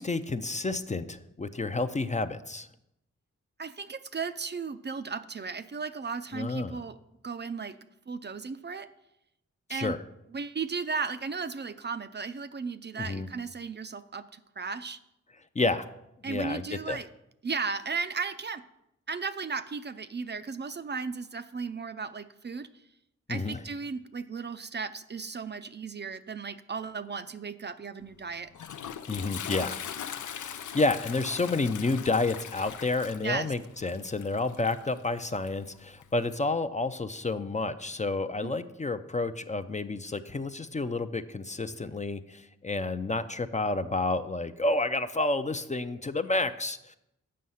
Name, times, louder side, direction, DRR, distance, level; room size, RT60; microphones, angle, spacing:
voice 1, 0.0-2.7 6.3-6.8 9.7-10.0 13.0-13.3 15.6-15.9 16.2-17.0 23.3-23.6 29.1-29.8 30.3-47.0, left 3 dB, 25° left, 10 dB, 0.4 m, -30 dB
voice 2, 3.6-7.0 7.2-7.8 8.1-8.9 9.7-10.0 10.3-15.0 16.2-17.1 17.4-18.6 19.1-22.7 23.3-28.5 33.2-33.5 38.4-38.5, right 5 dB, 35° right, 11 dB, 0.4 m, -35 dB
Toilet flush, 28.0-36.4, left 8 dB, 85° left, 0.5 m, -41 dB
7.6 x 5.6 x 5.5 m, 0.84 s
cardioid pair, 55°, 29 cm